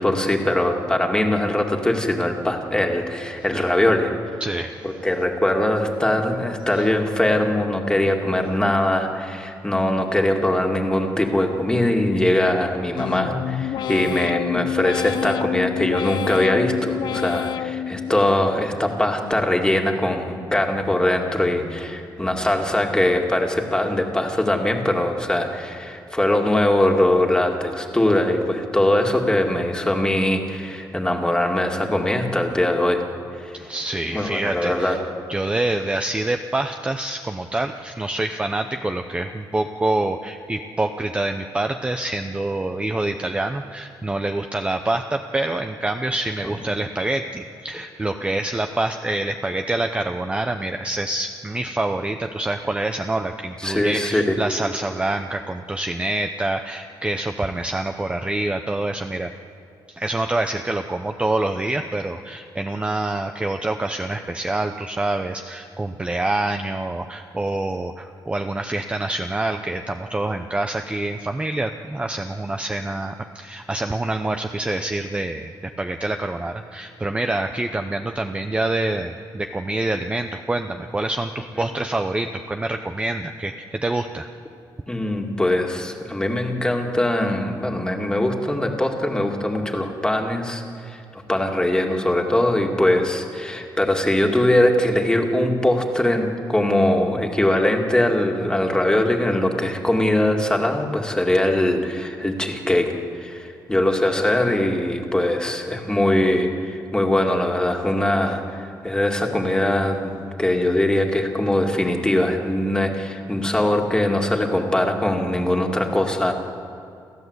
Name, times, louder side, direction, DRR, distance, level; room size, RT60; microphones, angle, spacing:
voice 1, 0.0-4.1 4.8-33.0 33.4-33.6 34.1-35.0 53.6-54.3 84.9-116.3, left 1 dB, 10° left, 2 dB, 2.2 m, -21 dB
voice 2, 4.4-4.9 6.7-6.8 33.5-35.0 35.3-59.3 59.9-84.3, right 2 dB, 15° right, 6 dB, 0.7 m, -26 dB
sound 1, 13.0-18.8 19.2-19.9 20.3-21.0 21.4-22.0 22.5-23.1 23.6-24.1, left 10 dB, 70° left, 0.4 m, -29 dB
29.5 x 13.5 x 8.1 m, 2.5 s
cardioid pair, 125°, 8 cm